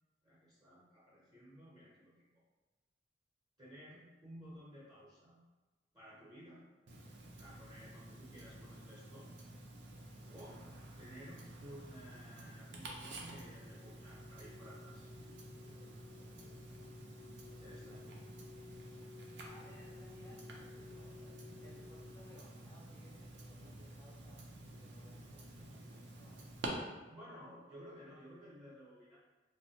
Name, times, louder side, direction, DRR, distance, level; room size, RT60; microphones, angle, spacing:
voice 1, 0.2-2.4 3.6-5.4 5.9-6.6 7.4-9.3 10.3-10.6 11.0-15.1 17.6-18.1 27.1-29.2, equal, 25° right, -9 dB, 0.7 m, -55 dB
Tick-tock, 6.9-26.7, right 1 dB, 80° right, 0.5 m, -51 dB
voice 2, 10.0-10.4 16.1-16.8 17.7-18.2 19.5-24.4 24.8-26.5, equal, 15° left, -7 dB, 0.4 m, -63 dB
sound 1, 13.5-22.6, left 5 dB, 90° left, 0.3 m, -57 dB
3.1 x 2.0 x 2.8 m, 1.2 s
head